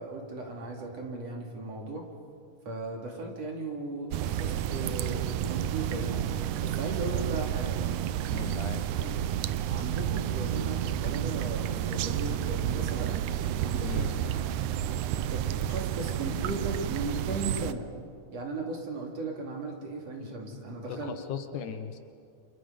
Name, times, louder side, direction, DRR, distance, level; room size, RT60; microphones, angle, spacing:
voice 1, 0.0-2.1 2.7-6.2 6.6-7.9 9.7-13.2 13.6-14.4 15.1-17.9 18.3-21.1, right 2 dB, 50° right, 0 dB, 3.8 m, -37 dB
sound 1, 4.1-17.7, right 11 dB, 75° right, 1.9 m, -30 dB
voice 2, 8.3-9.2 13.8-14.1 20.9-22.0, left 7 dB, 70° left, 8 dB, 2.5 m, -37 dB
30.0 x 27.5 x 5.3 m, 2.3 s
omnidirectional pair, 3.9 m